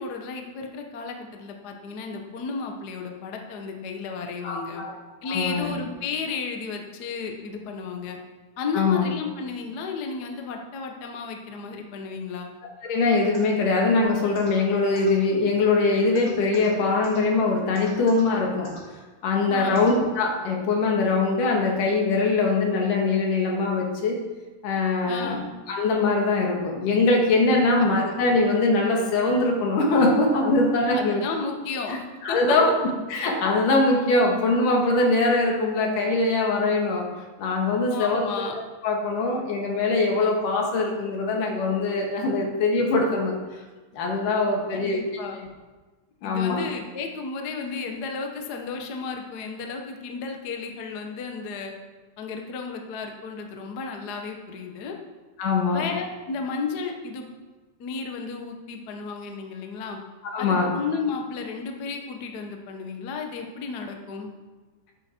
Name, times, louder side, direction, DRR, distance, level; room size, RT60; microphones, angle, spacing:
voice 1, 0.0-4.8 5.2-8.2 8.6-12.5 19.5-19.8 25.1-25.5 30.9-32.4 37.9-38.5 44.7-45.4 46.2-51.7 52.2-55.0 55.7-57.3 57.8-60.0 60.4-64.3, left 5 dB, 60° left, 3 dB, 1.0 m, -33 dB
voice 2, 4.4-4.9 5.2-5.7 8.7-9.1 12.9-18.8 19.2-24.2 24.6-25.4 25.7-31.2 32.2-32.7 33.1-37.1 37.4-38.2 38.8-43.4 43.9-45.0 46.2-46.6 55.4-55.9 60.3-60.7, left 3 dB, 85° left, 0 dB, 3.4 m, -22 dB
sound 1, 13.3-13.4 14.3-14.5 14.9-15.1 16.1-16.7 17.0-17.2 17.7-18.2 18.6-18.8 19.7-19.9, left 1 dB, 35° left, 3.6 m, -42 dB
13.0 x 9.0 x 4.5 m, 1.3 s
omnidirectional pair, 3.6 m